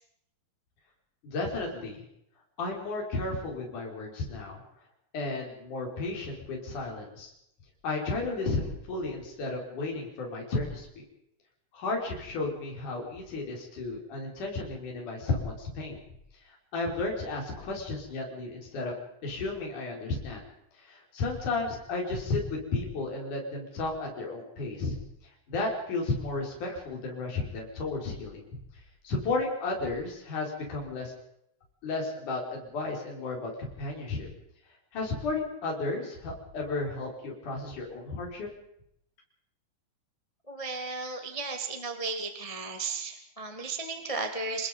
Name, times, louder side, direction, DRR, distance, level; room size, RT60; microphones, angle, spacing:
voice 1, 1.2-2.0 2.6-4.6 5.1-7.3 7.8-10.9 11.7-16.0 16.4-18.9 19.2-20.4 20.7-25.0 25.5-28.5 29.0-31.1 31.8-34.3 34.9-38.5, left 3 dB, 45° left, -1 dB, 6.4 m, -33 dB
voice 2, 40.5-44.7, right 3 dB, 15° left, 4 dB, 1.1 m, -34 dB
28.0 x 20.5 x 5.4 m, 0.77 s
omnidirectional pair, 5.2 m